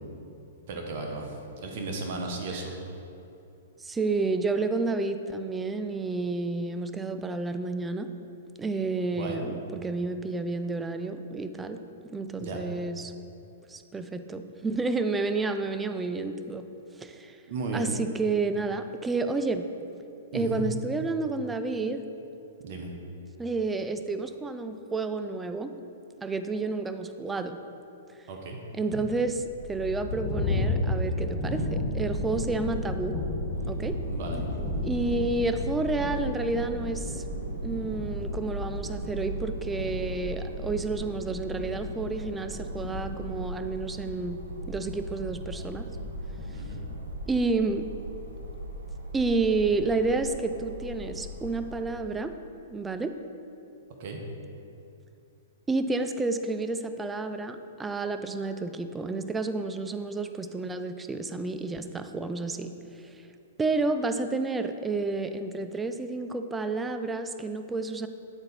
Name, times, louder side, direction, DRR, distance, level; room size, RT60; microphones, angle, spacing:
voice 1, 0.7-1.3 1.6-2.8 9.1-9.4 12.4-12.6 17.5-17.9 20.3-20.6 22.6-22.9 28.3-28.6 34.1-34.5 46.5-46.8 54.0-54.2, right 3 dB, 55° right, 2 dB, 1.0 m, -34 dB
voice 2, 3.8-8.1 8.6-11.8 12.1-13.1 13.7-16.7 17.0-17.4 17.7-19.6 20.3-22.0 23.4-25.7 26.2-27.6 28.7-33.1 33.7-34.0 34.8-37.2 37.6-44.4 44.7-45.8 47.3-47.9 49.1-52.3 52.7-53.1 55.7-62.7 63.0-63.1 63.6-68.1, right 3 dB, 10° right, 9 dB, 0.3 m, -30 dB
sound 1, 29.4-47.4, left 1 dB, 20° left, 1.3 m, -34 dB
sound 2, 33.5-51.9, right 1 dB, 90° right, 0.9 m, -39 dB
9.0 x 3.9 x 4.1 m, 2.7 s
hypercardioid pair, 130°, 0 cm